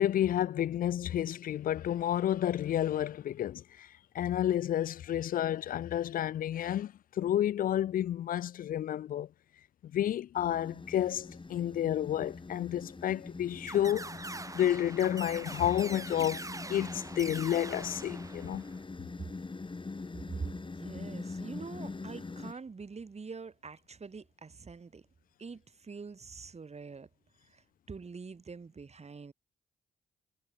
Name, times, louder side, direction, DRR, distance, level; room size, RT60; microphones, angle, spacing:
voice 1, 0.0-3.9 4.1-9.3 9.9-14.1 14.5-18.6, left 11 dB, 50° left, 0.6 m, -30 dB
sound 1, 10.4-22.5, left 3 dB, 30° left, 4.2 m, -43 dB
sound 2, 13.7-18.8, right 2 dB, 20° right, 1.6 m, -43 dB
voice 2, 20.8-25.1 25.4-27.1 27.5-29.3, right 4 dB, 35° right, 5.6 m, -44 dB
hypercardioid pair, 45°, 18 cm